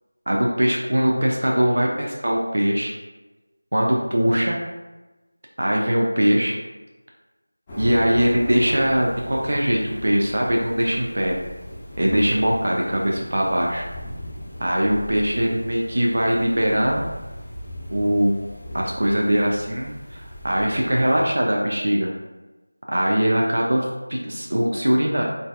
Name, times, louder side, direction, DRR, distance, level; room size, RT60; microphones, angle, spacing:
voice 1, 0.3-2.9 3.7-4.6 5.6-6.6 7.8-11.4 12.0-13.9 14.6-17.1 17.9-18.3 18.7-22.1 22.9-25.2, equal, 60° right, -1 dB, 0.5 m, -21 dB
sound 1, 7.7-21.2, equal, 15° left, 0.7 m, -37 dB
4.0 x 3.3 x 2.3 m, 1.1 s
figure-of-eight pair, 175°, 0 cm